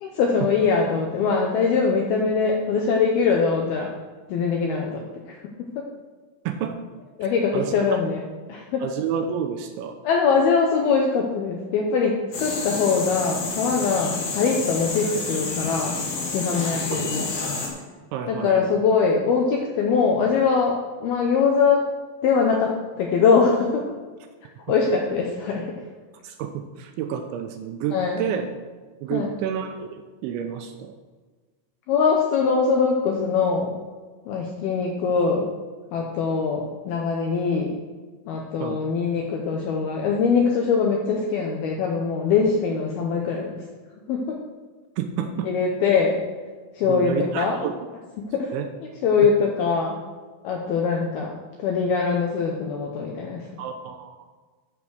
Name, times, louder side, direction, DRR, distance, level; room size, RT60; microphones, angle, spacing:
voice 1, 0.0-3.9 4.3-5.7 7.2-8.2 8.5-8.8 10.0-16.0 16.3-17.3 18.3-21.8 22.2-23.8 24.7-25.6 27.9-28.2 29.1-29.4 31.9-33.7 34.3-35.5 35.9-37.7 38.3-43.6 44.1-44.4 45.4-46.2 46.8-47.6 48.3-48.5 49.0-50.0 50.4-51.3 51.6-53.4, left 5 dB, 75° left, 0 dB, 2.3 m, -22 dB
voice 2, 6.5-6.8 7.5-8.0 8.8-10.0 16.9-17.1 18.1-18.8 26.2-28.5 29.0-29.9 30.2-31.0 38.6-38.8 45.0-45.5 46.8-47.7 48.5-48.7 49.2-49.3 53.6-54.3, right 8 dB, 85° right, 6 dB, 2.8 m, -29 dB
sound 1, 12.3-17.7, left 3 dB, 55° left, 3.4 m, -29 dB
13.0 x 6.0 x 6.4 m, 1.4 s
omnidirectional pair, 5.8 m